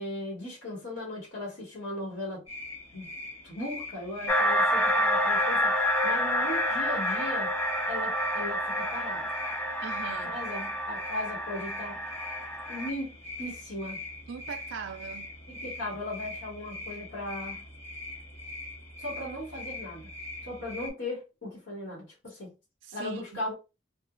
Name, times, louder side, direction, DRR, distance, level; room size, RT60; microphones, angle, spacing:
voice 1, 0.0-2.4 2.9-3.1 3.4-7.5 7.9-9.3 10.3-12.0 12.7-13.1 13.4-14.0 15.6-17.6 19.0-20.1 20.4-22.5 22.9-23.5, left 1 dB, 75° left, 1.3 m, -37 dB
sound 1, 2.5-20.9, left 2 dB, 35° left, 0.9 m, -42 dB
sound 2, 4.3-12.9, equal, 10° left, 0.3 m, -28 dB
voice 2, 9.8-10.4 14.3-15.3 22.8-23.4, right 6 dB, 75° right, 0.3 m, -40 dB
2.9 x 2.4 x 2.5 m
head